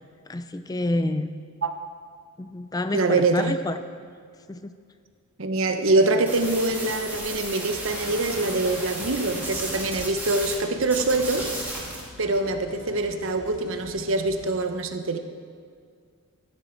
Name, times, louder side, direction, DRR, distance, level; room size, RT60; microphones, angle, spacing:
voice 1, 0.3-1.3 2.4-3.8 4.5-4.7, left 2 dB, 15° left, 10 dB, 0.3 m, -28 dB
voice 2, 2.9-3.6 5.4-11.5 12.2-15.2, right 2 dB, 65° right, 7 dB, 0.9 m, -24 dB
sound 1, 6.3-10.6 10.8-12.0, right 1 dB, 10° right, 2.4 m, -34 dB
sound 2, 7.7-14.7, left 1 dB, 65° left, 1.6 m, -46 dB
14.5 x 11.5 x 4.5 m, 2.2 s
head